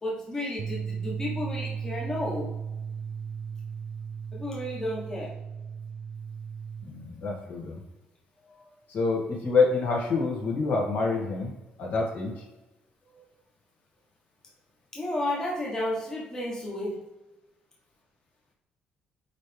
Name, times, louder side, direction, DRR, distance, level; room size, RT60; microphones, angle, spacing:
voice 1, 0.0-2.5 4.3-5.4 8.5-8.6 13.1-13.2 14.9-17.0, left 1 dB, 20° left, -4 dB, 1.3 m, -32 dB
sound 1, 0.6-6.8, right 6 dB, 45° right, 0.4 m, -36 dB
voice 2, 6.8-7.8 8.9-11.5 11.8-12.3, left 4 dB, 60° left, -3 dB, 1.9 m, -27 dB
9.0 x 3.3 x 3.4 m, 1.0 s
cardioid pair, 140°, 3 cm